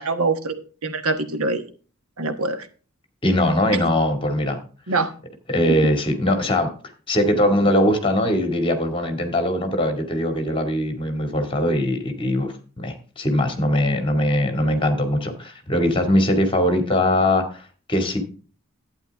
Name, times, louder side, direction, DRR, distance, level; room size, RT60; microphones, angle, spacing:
voice 1, 0.0-1.6 2.2-2.7 4.9-5.1, right 3 dB, 80° right, 1.4 m, -24 dB
voice 2, 3.2-4.6 5.5-6.7 7.1-18.2, left 1 dB, 25° left, 2.1 m, -21 dB
11.5 x 9.3 x 3.5 m
head